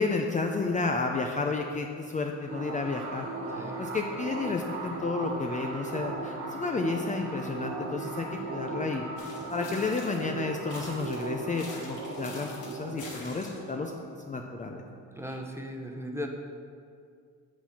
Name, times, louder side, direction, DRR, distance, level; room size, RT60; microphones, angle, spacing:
voice 1, 0.0-13.9 14.3-14.8 15.3-15.4, left 4 dB, 25° left, 2 dB, 0.5 m, -32 dB
sound 1, 2.5-15.7, right 3 dB, 80° right, 1.3 m, -38 dB
sound 2, 9.2-10.3 10.7-13.7, left 2 dB, 80° left, 2.1 m, -46 dB
voice 2, 15.2-16.3, equal, 10° right, 2 dB, 0.9 m, -37 dB
8.0 x 4.2 x 6.0 m, 2.2 s
cardioid pair, 90°, 30 cm